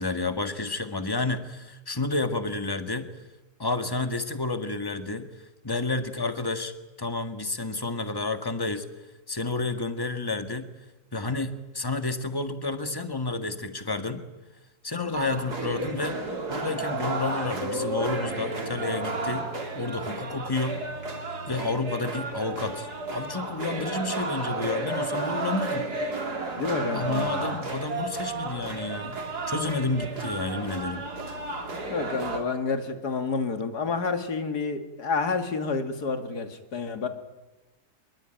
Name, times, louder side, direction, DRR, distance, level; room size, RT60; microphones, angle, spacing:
voice 1, 0.0-3.1 3.6-5.3 5.6-6.7 7.0-8.8 9.3-10.7 11.1-14.2 14.8-16.2 16.5-19.5 19.7-20.8 21.5-25.9 26.9-29.2 29.5-31.1, left 3 dB, 15° left, 8 dB, 1.6 m, -30 dB
sound 1, 15.1-32.4, right 2 dB, 80° right, 3.6 m, -32 dB
voice 2, 26.6-27.4 31.9-37.1, left 4 dB, 85° left, 7 dB, 2.7 m, -29 dB
25.0 x 21.5 x 9.1 m, 1.1 s
omnidirectional pair, 1.7 m